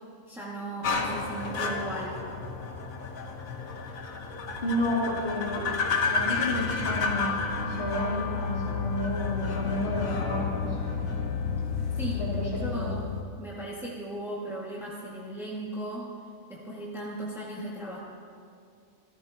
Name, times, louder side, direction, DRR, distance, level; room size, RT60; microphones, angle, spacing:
voice 1, 0.3-2.3 12.0-13.1 13.4-16.1 16.5-18.0, right 1 dB, ahead, -6 dB, 1.9 m, -37 dB
sound 1, 0.8-13.2, left 5 dB, 75° left, 1.6 m, -31 dB
voice 2, 4.6-5.6 6.1-10.8 12.2-12.8, left 1 dB, 45° left, -8 dB, 2.8 m, -31 dB
28.0 x 13.0 x 2.9 m, 2.3 s
omnidirectional pair, 1.5 m